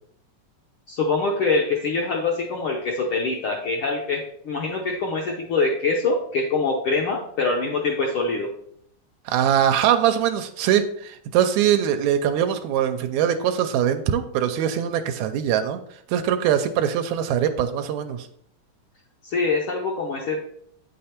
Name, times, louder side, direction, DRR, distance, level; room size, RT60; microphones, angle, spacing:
voice 1, 0.9-8.5 19.2-20.5, left 3 dB, 75° left, 0 dB, 1.2 m, -24 dB
voice 2, 9.3-15.8 16.1-18.3, right 9 dB, 80° right, 7 dB, 1.9 m, -22 dB
8.6 x 5.4 x 4.3 m, 0.70 s
omnidirectional pair, 3.3 m